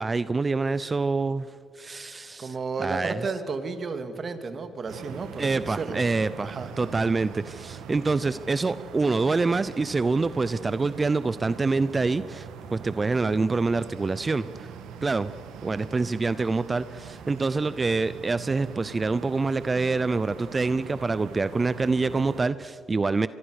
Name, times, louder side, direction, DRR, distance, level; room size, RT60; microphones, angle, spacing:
voice 1, 0.0-3.3 5.4-14.7 15.0-15.3 15.6-23.3, right 3 dB, 25° right, 15 dB, 0.5 m, -26 dB
voice 2, 2.4-6.0 6.4-6.7, right 4 dB, 45° right, 9 dB, 2.3 m, -33 dB
sound 1, 4.9-22.4, right 7 dB, 85° right, 1.8 m, -42 dB
24.5 x 22.5 x 6.5 m, 2.7 s
cardioid pair, 90°, 0 cm